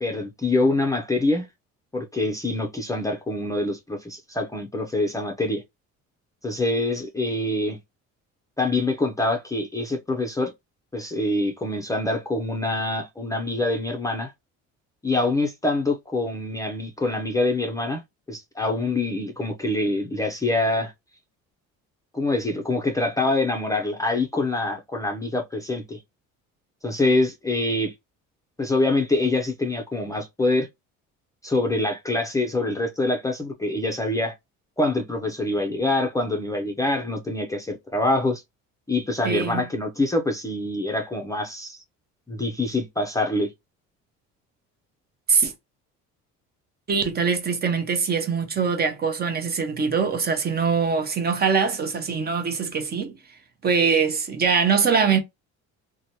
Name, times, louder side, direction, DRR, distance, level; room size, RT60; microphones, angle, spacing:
voice 1, 0.0-1.5 1.9-5.6 6.4-7.8 8.6-10.5 10.9-14.3 15.0-18.0 18.3-20.9 22.1-26.0 26.8-27.9 28.6-30.7 31.4-34.3 34.8-38.4 38.9-41.8 42.3-43.5, left 2 dB, 10° left, 0.5 m, -25 dB
voice 2, 39.2-39.6 45.3-45.5 46.9-53.1 53.6-55.2, right 5 dB, 30° right, 0.7 m, -23 dB
2.8 x 2.2 x 2.8 m
cardioid pair, 125°, 30 cm